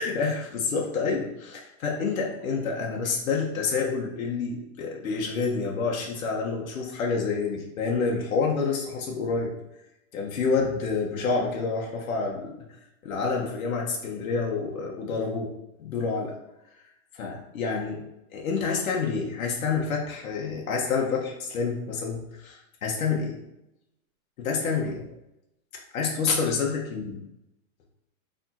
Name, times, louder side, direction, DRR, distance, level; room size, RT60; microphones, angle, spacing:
voice 1, 0.0-9.5 10.1-12.6 13.0-15.5 15.8-16.4 17.1-18.0 18.3-23.4 24.4-25.1 25.9-27.2, left 4 dB, 75° left, -1 dB, 1.2 m, -28 dB
4.4 x 3.6 x 2.8 m, 0.86 s
supercardioid pair, 175°, 42 cm